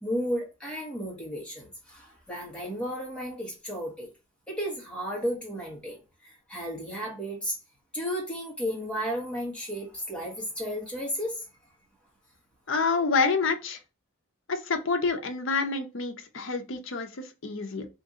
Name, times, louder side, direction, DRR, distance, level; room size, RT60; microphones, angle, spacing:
voice 1, 0.0-4.1 4.5-7.6 7.9-11.4, equal, 5° left, 1.2 m, -33 dB
voice 2, 12.7-13.8 14.5-17.9, left 4 dB, 70° left, 0.6 m, -28 dB
2.8 x 2.6 x 3.6 m
head